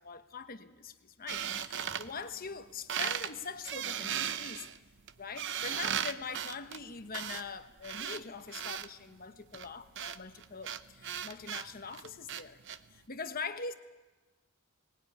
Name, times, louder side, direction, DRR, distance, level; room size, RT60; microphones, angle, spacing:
voice 1, 0.0-4.7 5.2-12.6 12.9-13.7, left 5 dB, 40° left, 9 dB, 1.1 m, -43 dB
sound 1, 1.3-2.6 2.9-3.3 3.6-8.9 9.5-12.8, right 9 dB, 55° right, 0.8 m, -37 dB
20.0 x 18.0 x 9.6 m, 1.2 s
head